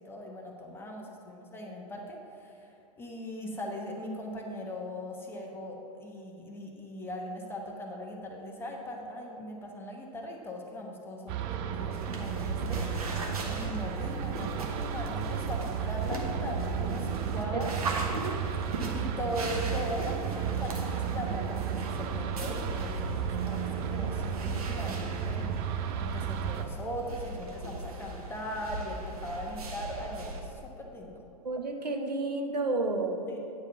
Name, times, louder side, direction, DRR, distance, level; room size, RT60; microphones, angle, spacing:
voice 1, 0.0-13.2 13.5-18.1 18.9-25.5 25.9-31.2 33.3-33.4, left 1 dB, 10° left, 0 dB, 1.1 m, -39 dB
sound 1, 11.3-26.6, right 9 dB, 30° right, 0.5 m, -34 dB
sound 2, 11.9-30.4, right 2 dB, 65° right, 1.4 m, -38 dB
voice 2, 31.4-33.3, right 2 dB, 85° right, 4 dB, 0.9 m, -31 dB
9.5 x 4.8 x 6.9 m, 2.7 s
figure-of-eight pair, 110°, 21 cm